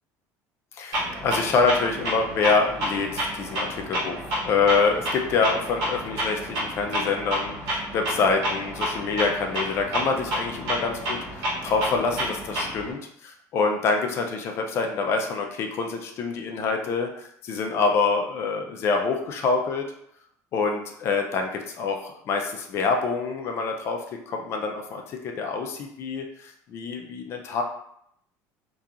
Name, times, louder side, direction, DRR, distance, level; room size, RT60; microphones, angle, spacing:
voice 1, 0.7-19.9 20.5-27.6, left 4 dB, 35° left, 3 dB, 0.4 m, -26 dB
Clock, 0.9-12.9, equal, 60° right, 1.0 m, -30 dB
2.8 x 2.3 x 2.4 m, 0.72 s
cardioid pair, 175°, 7 cm